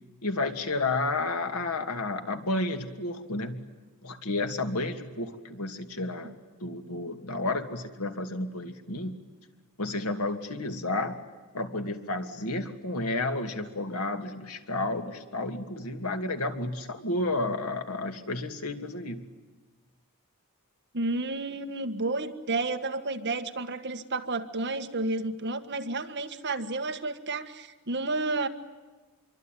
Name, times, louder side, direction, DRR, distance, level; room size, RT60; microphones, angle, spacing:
voice 1, 0.2-3.6 4.0-6.3 6.6-9.1 9.8-11.2 11.5-19.3, left 2 dB, 90° left, 6 dB, 2.6 m, -31 dB
voice 2, 20.9-28.5, right 2 dB, 50° right, 7 dB, 1.7 m, -31 dB
26.5 x 24.0 x 9.3 m, 1.3 s
head